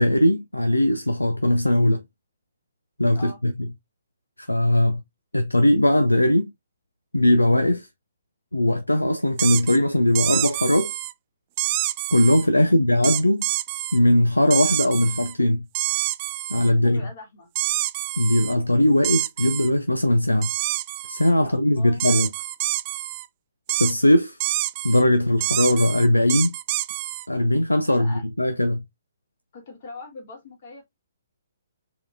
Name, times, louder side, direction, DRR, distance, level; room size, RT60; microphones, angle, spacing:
voice 1, 0.0-2.0 3.0-3.5 4.4-5.0 5.3-6.5 7.1-7.9 8.5-11.0 12.1-13.5 13.9-15.7 16.5-17.0 18.2-20.5 21.1-22.3 23.7-24.4 24.8-26.6 27.3-28.8, left 1 dB, 85° left, 0.5 m, -20 dB
sound 1, 9.4-9.8 10.2-11.1 11.6-12.5 13.0-14.0 14.5-15.3 15.7-16.7 17.6-18.5 19.0-19.7 20.4-21.3 22.0-23.3 23.7-23.9 24.4-25.0 25.4-27.3, right 18 dB, 30° right, 0.3 m, -27 dB
voice 2, 16.8-17.5 21.4-22.1 27.7-28.2 29.5-30.8, left 3 dB, 45° left, 2.0 m, -42 dB
4.7 x 3.6 x 2.6 m
figure-of-eight pair, 130°, 0 cm